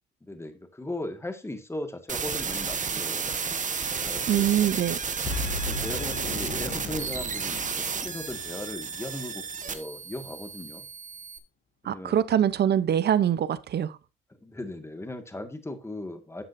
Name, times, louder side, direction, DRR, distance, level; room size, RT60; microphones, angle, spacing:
voice 1, 0.2-3.4 4.0-4.5 5.6-10.9 11.8-12.2 14.3-16.4, left 1 dB, 15° left, 1.9 m, -38 dB
sound 1, 2.1-11.4, right 6 dB, 40° right, 1.3 m, -32 dB
voice 2, 4.3-5.0 11.8-14.0, right 10 dB, 55° right, 0.8 m, -24 dB
Boom, 5.2-9.6, left 3 dB, 65° left, 4.4 m, -37 dB
12.0 x 7.4 x 2.7 m
cardioid pair, 90°, 20 cm